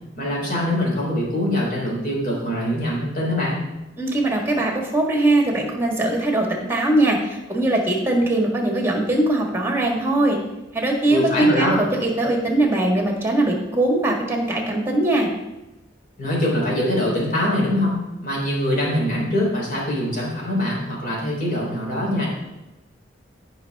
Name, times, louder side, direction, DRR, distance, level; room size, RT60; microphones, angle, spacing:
voice 1, 0.2-3.7 11.1-11.8 16.2-22.3, left 1 dB, 45° left, -4 dB, 3.7 m, -23 dB
voice 2, 4.0-10.4 10.7-15.3, right 2 dB, 10° right, 1 dB, 1.7 m, -21 dB
15.5 x 5.5 x 3.5 m, 1.0 s
head